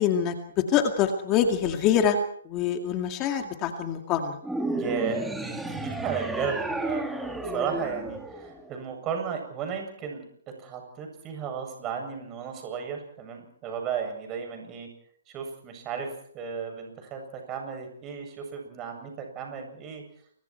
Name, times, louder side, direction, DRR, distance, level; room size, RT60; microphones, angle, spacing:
voice 1, 0.0-2.2 2.4-4.4 7.4-7.7, left 8 dB, 25° left, 5 dB, 2.3 m, -25 dB
sound 1, 4.4-8.9, right 2 dB, 5° right, 2.1 m, -32 dB
voice 2, 4.8-10.2 10.6-14.9 15.3-20.0, right 7 dB, 20° right, 4 dB, 7.8 m, -34 dB
29.0 x 24.0 x 4.6 m, 0.64 s
hypercardioid pair, 155°, 0 cm